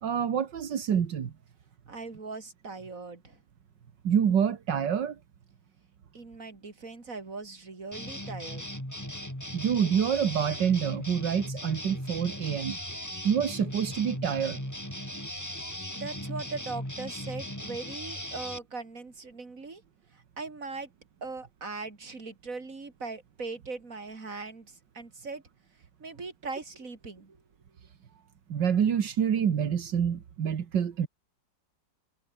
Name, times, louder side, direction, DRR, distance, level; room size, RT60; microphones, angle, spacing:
voice 1, 0.0-1.3 4.0-5.2 9.5-12.8 13.2-14.6 28.5-31.1, right 8 dB, 80° right, 2.2 m, -27 dB
voice 2, 1.9-3.4 6.1-8.6 15.9-19.8 20.1-20.9 21.2-25.4 26.0-27.4, right 3 dB, 50° right, 3.9 m, -40 dB
sound 1, 7.9-18.6, equal, 10° left, 7.6 m, -38 dB
omnidirectional pair, 1.9 m